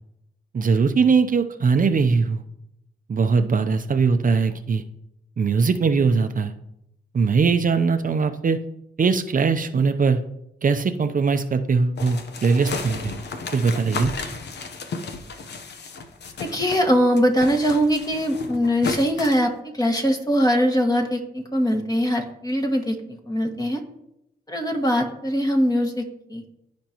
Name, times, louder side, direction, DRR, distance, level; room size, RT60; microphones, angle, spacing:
voice 1, 0.5-2.4 3.1-4.8 5.4-6.5 7.1-8.6 9.0-10.2 10.6-13.1 13.5-14.1, right 5 dB, 50° right, 8 dB, 0.7 m, -20 dB
sound 1, 12.0-16.9 17.2-19.4, left 4 dB, 75° left, 1.0 m, -33 dB
voice 2, 16.4-23.8 24.5-26.0 26.3-26.4, equal, 20° left, 3 dB, 1.8 m, -22 dB
15.5 x 5.2 x 3.0 m, 0.82 s
cardioid pair, 60°, 18 cm